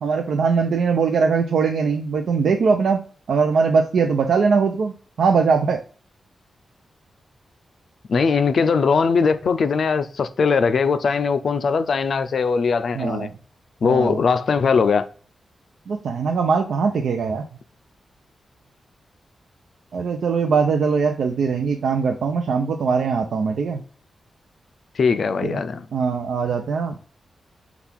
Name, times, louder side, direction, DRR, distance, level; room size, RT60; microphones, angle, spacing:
voice 1, 0.0-3.0 3.3-5.8 12.9-13.3 13.8-14.2 15.9-17.4 19.9-23.8 25.4-25.6 25.9-27.0, right 5 dB, 80° right, 0.4 m, -21 dB
voice 2, 8.1-13.3 13.8-15.1 25.0-25.9, left 5 dB, 55° left, 0.4 m, -20 dB
5.9 x 2.3 x 3.4 m
wide cardioid pair, 165°, 0 cm